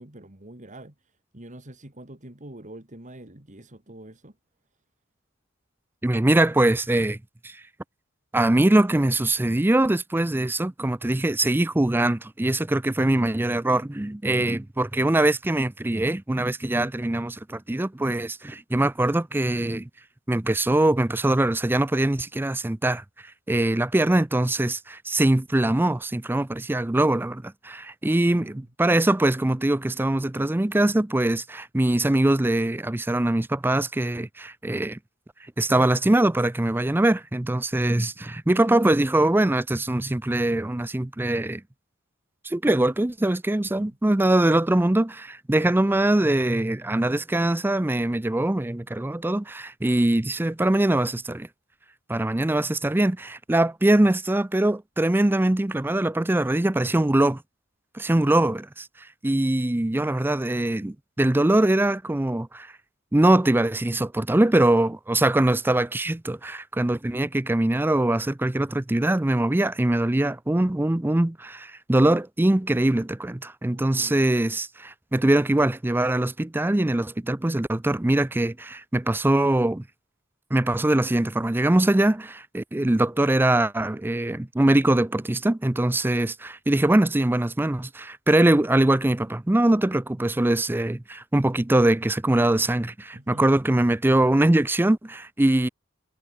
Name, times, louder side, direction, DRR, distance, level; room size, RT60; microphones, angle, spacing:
voice 1, 0.0-4.4 14.4-14.6 28.3-28.7 43.7-44.0 73.7-74.3 93.1-93.5, right 1 dB, 35° right, 2.9 m, -46 dB
voice 2, 6.0-7.2 7.4-7.6 8.3-19.9 20.3-23.0 23.5-35.0 35.6-41.6 42.4-51.5 52.1-57.4 57.9-58.9 59.2-62.7 63.1-79.8 80.5-95.7, right 1 dB, 10° right, 0.5 m, -22 dB
head